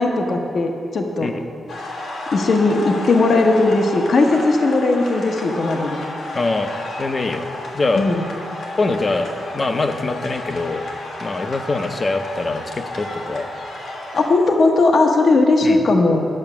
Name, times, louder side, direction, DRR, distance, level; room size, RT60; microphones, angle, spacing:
voice 1, 0.0-1.3 2.3-6.0 7.9-8.3 14.1-16.3, left 3 dB, 55° left, 3 dB, 0.9 m, -17 dB
sound 1, 1.7-14.3, left 2 dB, 85° left, 1.7 m, -32 dB
voice 2, 6.3-6.7 7.0-7.5 7.7-8.1 8.8-9.3 9.5-10.8 11.2-13.5 15.6-15.8, left 3 dB, 35° left, 7 dB, 0.6 m, -23 dB
8.8 x 6.4 x 6.0 m, 2.4 s
cardioid pair, 110°, 0 cm